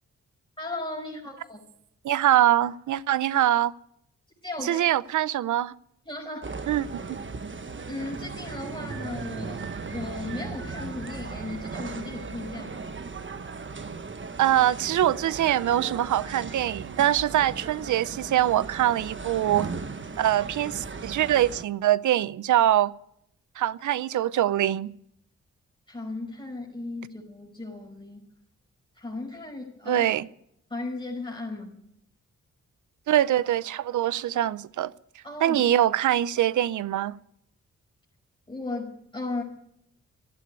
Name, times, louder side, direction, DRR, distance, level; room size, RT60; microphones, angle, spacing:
voice 1, 0.6-1.6 4.4-4.8 6.0-6.7 7.9-13.0 25.9-28.3 29.0-30.1 30.7-31.8 35.2-35.6 38.5-39.4, left 2 dB, 15° left, 5.5 m, -36 dB
voice 2, 2.0-3.7 4.6-5.7 6.7-7.2 14.4-19.7 20.2-22.9 23.6-24.9 29.9-30.3 33.1-34.9 35.4-37.2, right 12 dB, 90° right, 0.6 m, -23 dB
sound 1, 6.4-21.6, right 4 dB, 40° right, 1.3 m, -37 dB
14.5 x 12.0 x 8.1 m
cardioid pair, 55°, 29 cm